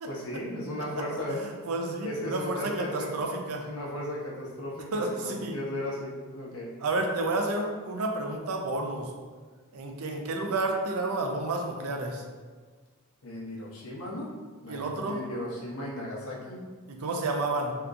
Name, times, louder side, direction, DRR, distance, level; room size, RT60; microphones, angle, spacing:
voice 1, 0.1-1.4 2.0-3.1 3.7-6.7 13.2-14.3 14.6-16.6, left 1 dB, 70° left, -4 dB, 0.8 m, -36 dB
voice 2, 1.7-3.6 4.9-5.6 6.8-9.1 9.7-12.2 14.7-15.2 16.9-17.7, right 2 dB, 75° right, 2 dB, 0.5 m, -30 dB
3.5 x 2.9 x 2.5 m, 1.4 s
head